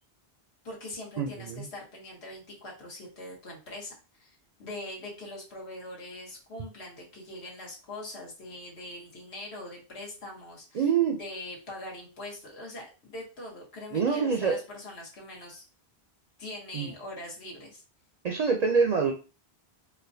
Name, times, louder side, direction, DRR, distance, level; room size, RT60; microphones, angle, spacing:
voice 1, 0.6-10.8 11.2-15.6 16.4-17.8, left 1 dB, 80° left, -2 dB, 1.5 m, -42 dB
voice 2, 1.2-1.7 10.7-11.2 13.9-14.6 16.7-16.9 18.2-19.1, right 6 dB, 55° right, 2 dB, 0.5 m, -25 dB
4.3 x 2.2 x 2.6 m, 0.32 s
omnidirectional pair, 1.1 m